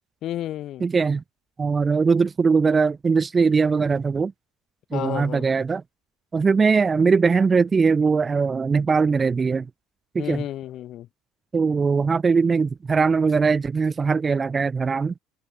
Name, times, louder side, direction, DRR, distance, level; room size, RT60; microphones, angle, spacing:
voice 1, 0.2-0.9 4.9-5.4 10.2-11.1, left 13 dB, 50° left, 6.4 m, -31 dB
voice 2, 0.8-1.2 1.6-4.3 4.9-5.8 6.3-9.7 10.1-10.4 11.5-15.1, right 5 dB, 20° right, 1.3 m, -20 dB
cardioid pair, 145°, 0 cm